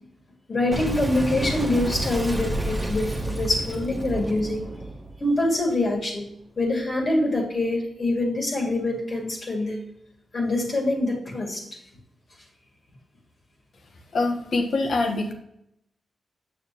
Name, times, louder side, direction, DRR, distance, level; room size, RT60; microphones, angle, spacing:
voice 1, 0.5-4.6 5.2-6.3 6.6-9.8 10.3-11.7, left 2 dB, 50° left, -2 dB, 2.2 m, -25 dB
Boom, 0.7-5.9, right 1 dB, 15° right, 1.3 m, -30 dB
voice 2, 14.1-15.3, left 3 dB, 65° left, 4 dB, 1.2 m, -24 dB
7.2 x 6.5 x 3.0 m, 0.76 s
cardioid pair, 85°, 0 cm